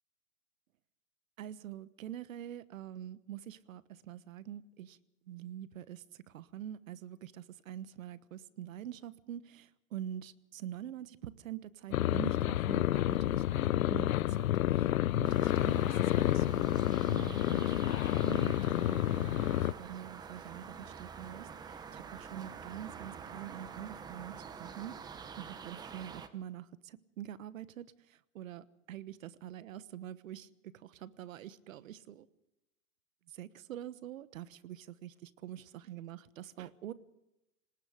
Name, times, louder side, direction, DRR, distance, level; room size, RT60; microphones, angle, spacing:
voice 1, 1.4-5.0 5.3-17.8 18.0-25.0 25.4-30.5 30.7-32.3 33.3-36.9, right 11 dB, 75° right, 16 dB, 1.3 m, -45 dB
sound 1, 11.9-19.7, left 13 dB, 80° left, 0.8 m, -29 dB
sound 2, 15.2-26.3, right 6 dB, 10° right, 0.7 m, -47 dB
26.5 x 19.5 x 5.1 m, 0.90 s
hypercardioid pair, 150°, 41 cm